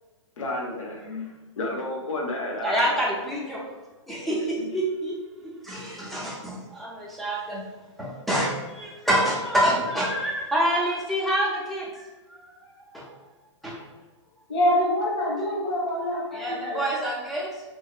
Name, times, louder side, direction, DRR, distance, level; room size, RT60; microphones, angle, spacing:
voice 1, 0.4-3.0 4.3-4.7, left 2 dB, 90° left, -1 dB, 0.7 m, -32 dB
voice 2, 2.5-3.6 4.1-7.6 8.0-13.1 13.6-13.9 16.3-17.6, right 1 dB, ahead, -4 dB, 0.4 m, -27 dB
voice 3, 14.5-16.8, left 1 dB, 50° left, -3 dB, 1.0 m, -25 dB
2.7 x 2.1 x 2.3 m, 1.2 s
hypercardioid pair, 140°, 16 cm